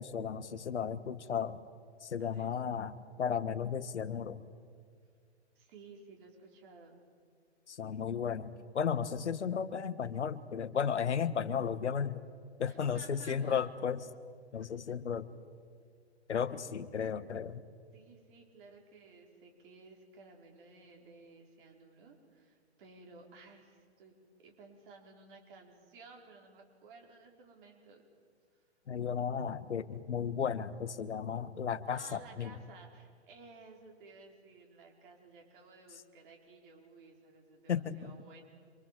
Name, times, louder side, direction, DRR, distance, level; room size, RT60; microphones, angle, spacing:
voice 1, 0.0-1.6 2.0-4.4 7.7-12.2 12.6-14.0 14.5-15.3 16.3-17.6 28.9-32.5 37.7-38.1, left 7 dB, 80° left, 14 dB, 1.6 m, -34 dB
voice 2, 2.2-2.6 5.5-7.0 12.6-13.7 14.6-14.7 16.6-16.7 17.9-28.1 31.9-38.4, right 4 dB, 45° right, 1 dB, 5.0 m, -56 dB
27.0 x 25.0 x 7.7 m, 2.1 s
hypercardioid pair, 130°, 34 cm